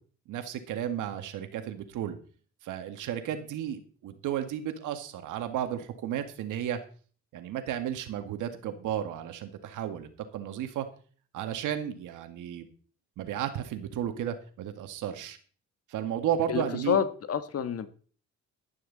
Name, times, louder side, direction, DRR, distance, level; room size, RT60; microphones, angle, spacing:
voice 1, 0.3-2.2 2.6-6.8 7.3-10.9 11.3-12.7 13.2-15.4 15.9-17.0, right 10 dB, 85° right, 7 dB, 2.0 m, -33 dB
voice 2, 16.5-17.9, left 7 dB, 50° left, 11 dB, 1.6 m, -28 dB
12.5 x 11.0 x 4.1 m, 0.41 s
cardioid pair, 90°, 30 cm